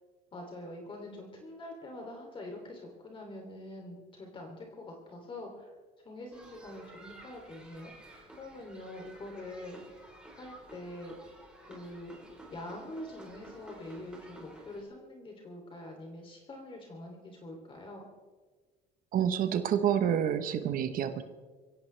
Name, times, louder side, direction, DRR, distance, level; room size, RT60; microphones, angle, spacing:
voice 1, 0.3-5.7 6.0-10.0 10.3-11.2 11.6-12.1 12.5-18.1, left 1 dB, 30° left, 1 dB, 3.0 m, -45 dB
sound 1, 6.3-14.8, right 1 dB, 5° right, 3.8 m, -52 dB
voice 2, 19.1-21.2, right 9 dB, 55° right, 9 dB, 1.1 m, -28 dB
23.5 x 16.5 x 3.3 m, 1.4 s
cardioid pair, 125°, 17 cm